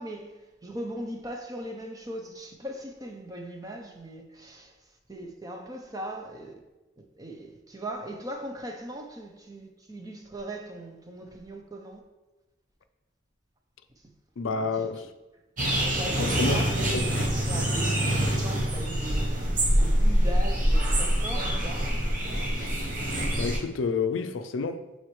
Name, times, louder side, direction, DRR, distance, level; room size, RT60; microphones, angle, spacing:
voice 1, 0.0-6.6 7.0-12.0 14.0-14.1 14.5-14.9 15.7-19.3 19.7-21.9, right 1 dB, 20° right, 0.6 m, -39 dB
voice 2, 14.4-15.1 16.2-16.6 16.9-17.1 22.8-22.9 23.3-24.9, left 4 dB, 75° left, 0.4 m, -29 dB
sound 1, 15.6-23.6, equal, 40° right, 1.0 m, -25 dB
7.7 x 4.3 x 3.1 m
head